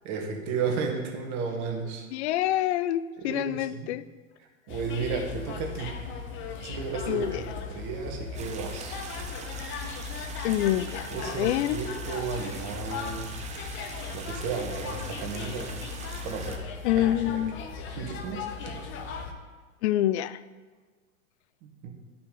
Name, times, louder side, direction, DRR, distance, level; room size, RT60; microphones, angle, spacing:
voice 1, 0.0-2.1 3.2-3.9 4.4-5.9 6.6-9.0 11.1-13.3 14.1-15.7 16.2-16.6 17.0-17.4 17.9-18.8 21.6-21.9, right 5 dB, 40° right, 2 dB, 1.7 m, -34 dB
voice 2, 2.1-4.0 7.1-7.4 10.4-11.8 16.8-17.6 19.8-20.4, left 13 dB, 55° left, 16 dB, 0.5 m, -26 dB
sound 1, 4.7-19.3, left 5 dB, 30° left, 0.9 m, -37 dB
sound 2, 8.3-16.6, right 5 dB, 15° right, 0.7 m, -43 dB
11.0 x 5.7 x 4.0 m, 1.4 s
hypercardioid pair, 110°, 42 cm